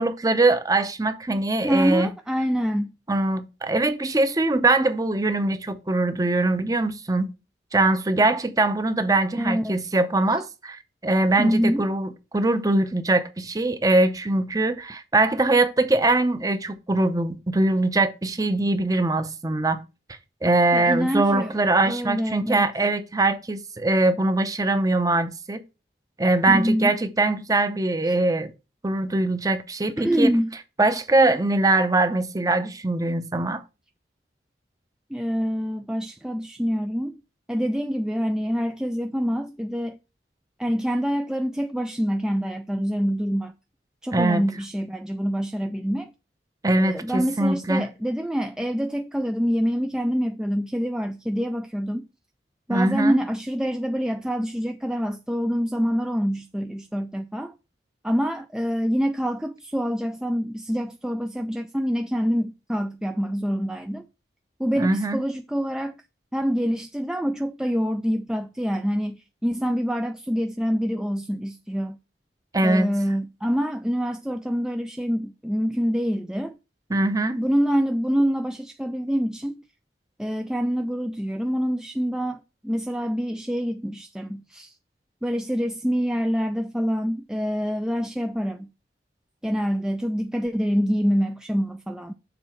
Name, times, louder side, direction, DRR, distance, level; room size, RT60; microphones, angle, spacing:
voice 1, 0.0-2.1 3.1-7.3 7.7-19.8 20.4-25.6 26.2-28.5 28.8-30.3 30.8-33.6 44.1-44.4 46.6-47.9 52.7-53.2 64.8-65.2 72.5-72.9 76.9-77.4, right 2 dB, 20° right, 0.7 m, -22 dB
voice 2, 1.6-2.9 9.3-9.9 11.4-11.9 20.7-22.7 26.5-26.9 30.0-30.5 35.1-37.2 37.5-40.0 40.6-43.5 44.0-46.1 46.8-52.1 52.7-57.5 58.0-64.1 64.6-66.0 66.3-72.0 72.6-76.6 77.4-79.6 80.2-84.7 85.2-88.7 89.4-92.1, equal, 5° right, 0.3 m, -26 dB
7.0 x 4.1 x 5.8 m
head